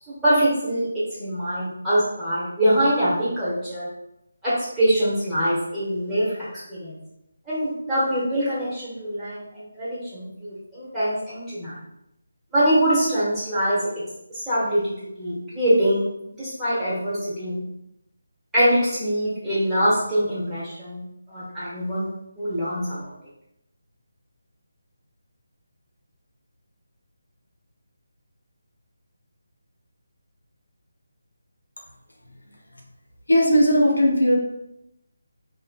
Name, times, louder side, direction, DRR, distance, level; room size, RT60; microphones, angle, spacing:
voice 1, 0.1-0.9 1.1-3.9 4.4-7.0 7.5-11.7 12.5-13.8 14.3-14.9 15.2-16.0 16.4-17.6 18.5-21.0 21.3-22.1 22.3-23.0, right 1 dB, 5° right, -13 dB, 1.2 m, -23 dB
voice 2, 33.3-34.4, equal, 80° left, 0 dB, 0.6 m, -17 dB
3.2 x 2.1 x 2.2 m, 0.84 s
figure-of-eight pair, 155°, 0 cm